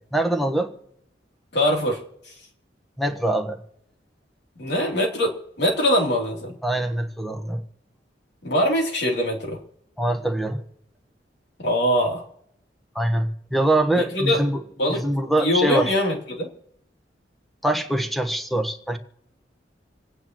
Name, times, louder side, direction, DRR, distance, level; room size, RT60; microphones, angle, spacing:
voice 1, 0.1-0.7 3.0-3.6 6.6-7.6 10.0-10.6 12.9-14.6 14.9-15.9 17.6-19.0, right 1 dB, ahead, 6 dB, 1.2 m, -23 dB
voice 2, 1.5-2.0 4.6-6.6 8.4-9.6 11.6-12.2 13.9-14.4 14.8-15.0 15.4-16.5, equal, 70° left, 0 dB, 3.1 m, -22 dB
27.5 x 9.5 x 3.0 m, 0.75 s
head